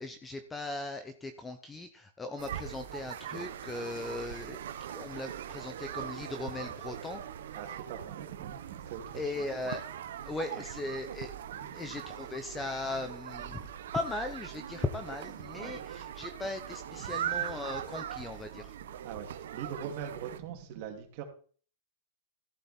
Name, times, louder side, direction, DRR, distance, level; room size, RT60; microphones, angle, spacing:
voice 1, 0.0-7.2 9.1-9.8 10.2-11.3 11.6-18.7, left 2 dB, 10° left, 0.8 m, -38 dB
sound 1, 2.4-20.4, right 10 dB, 70° right, 1.0 m, -41 dB
voice 2, 7.5-9.4 10.5-10.6 11.5-11.7 15.5-15.8 17.0-17.4 19.0-21.2, right 8 dB, 40° right, 2.8 m, -42 dB
14.0 x 8.0 x 4.4 m
supercardioid pair, 165°, 0 cm